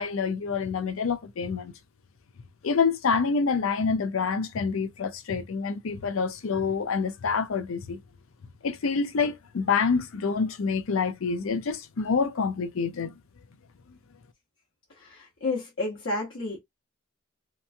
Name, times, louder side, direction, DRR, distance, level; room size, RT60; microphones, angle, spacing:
voice 1, 0.0-1.7 2.6-8.0 8.6-13.1 13.9-14.0, left 5 dB, 80° left, 0.5 m, -27 dB
voice 2, 15.0-16.6, left 2 dB, 65° left, 1.0 m, -31 dB
3.0 x 2.3 x 2.5 m
head